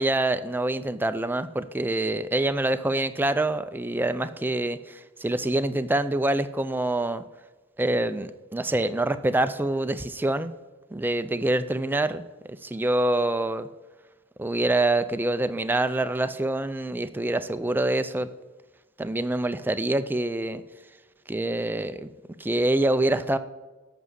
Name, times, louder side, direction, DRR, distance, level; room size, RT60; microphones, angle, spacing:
voice 1, 0.0-7.2 7.8-10.5 10.9-13.7 14.4-18.3 19.0-20.6 21.3-22.1 22.4-23.4, right 1 dB, 10° right, 11 dB, 0.4 m, -26 dB
8.4 x 6.1 x 7.3 m, 1.2 s
head